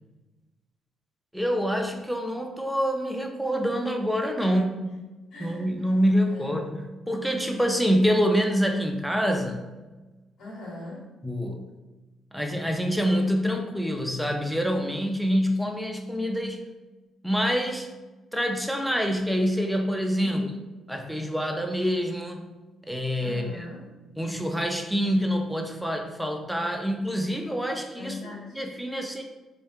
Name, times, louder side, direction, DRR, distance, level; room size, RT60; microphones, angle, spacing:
voice 1, 1.3-4.6 5.4-6.8 7.1-9.7 11.2-11.7 12.3-16.6 17.2-17.9 18.3-20.5 20.9-22.5 22.9-23.7 24.2-29.2, equal, ahead, 3 dB, 0.3 m, -26 dB
voice 2, 4.4-4.9 5.3-5.7 6.3-6.5 10.4-11.1 20.2-20.5 23.2-23.9 27.9-28.6 28.9-29.1, left 3 dB, 70° left, -3 dB, 0.8 m, -40 dB
2.7 x 2.2 x 2.3 m, 1.2 s
cardioid pair, 90°, 0 cm